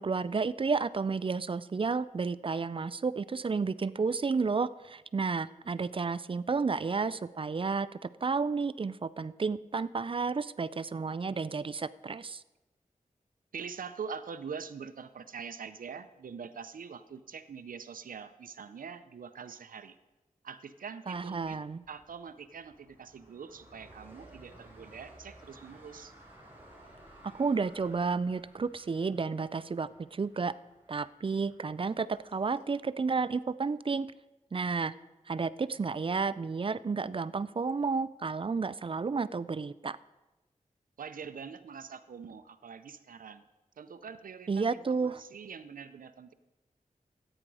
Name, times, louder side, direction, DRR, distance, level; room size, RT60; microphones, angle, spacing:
voice 1, 0.0-12.4 21.1-21.8 27.2-30.5 30.9-34.1 34.5-34.9 35.3-40.0 44.5-45.2, right 4 dB, 40° right, 17 dB, 0.4 m, -31 dB
voice 2, 13.5-20.0 20.4-26.1 41.0-43.4 43.8-46.3, right 6 dB, 90° right, 11 dB, 0.6 m, -44 dB
sound 1, 21.1-32.6, right 1 dB, 15° right, 4.0 m, -57 dB
14.0 x 9.0 x 4.8 m, 1.1 s
wide cardioid pair, 70°, 14 cm